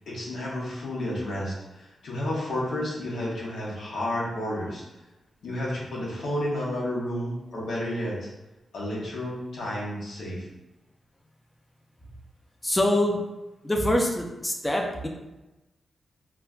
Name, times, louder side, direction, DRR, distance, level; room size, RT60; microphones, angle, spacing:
voice 1, 0.1-4.8 5.4-8.3 8.7-10.5, left 1 dB, 90° left, -5 dB, 0.8 m, -31 dB
voice 2, 12.6-13.2 13.6-15.1, left 1 dB, 10° left, 1 dB, 0.4 m, -24 dB
3.2 x 2.2 x 2.4 m, 1.0 s
cardioid pair, 90°, 0 cm